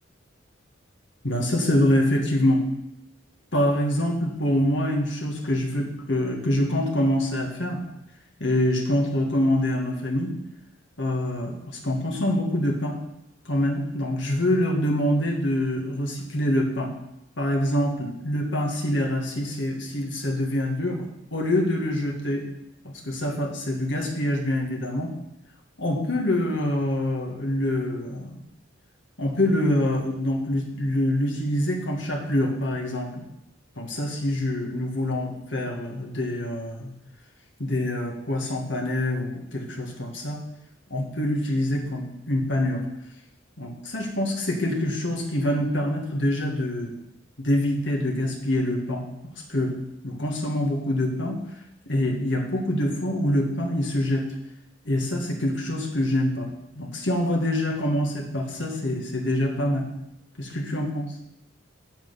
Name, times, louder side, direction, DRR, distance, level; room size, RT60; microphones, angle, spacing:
voice 1, 1.2-2.6 3.5-7.8 8.4-10.3 11.0-13.0 13.5-16.9 17.4-22.5 22.8-25.1 25.8-28.4 29.2-33.2 33.8-36.9 37.6-40.4 40.9-42.8 43.6-47.0 47.4-49.7 50.0-51.4 51.9-54.3 54.9-59.9 60.4-61.1, left 1 dB, 70° left, 1 dB, 1.7 m, -25 dB
7.5 x 7.3 x 5.7 m, 0.83 s
head